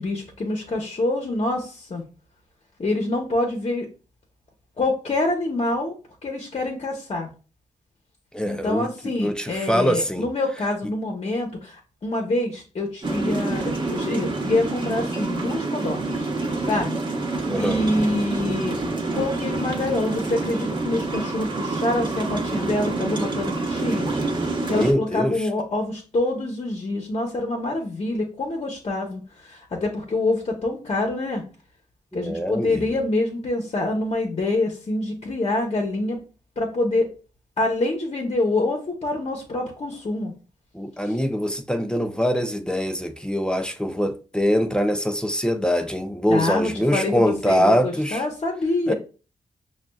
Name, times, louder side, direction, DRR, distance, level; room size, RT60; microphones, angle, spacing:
voice 1, 0.0-2.0 2.8-3.9 4.8-5.9 6.2-7.3 8.4-16.3 16.7-17.0 17.6-18.8 19.1-31.4 32.1-36.2 36.6-37.1 37.6-40.3 41.0-41.2 46.3-48.9, left 2 dB, 50° left, 0.9 m, -26 dB
voice 2, 8.3-10.3 17.4-17.8 24.7-25.5 32.1-32.8 40.7-48.2 48.9-49.0, equal, 5° left, 0.4 m, -23 dB
sound 1, 13.0-24.9, right 3 dB, 35° right, 0.9 m, -27 dB
5.9 x 2.4 x 2.2 m
cardioid pair, 70°, 13 cm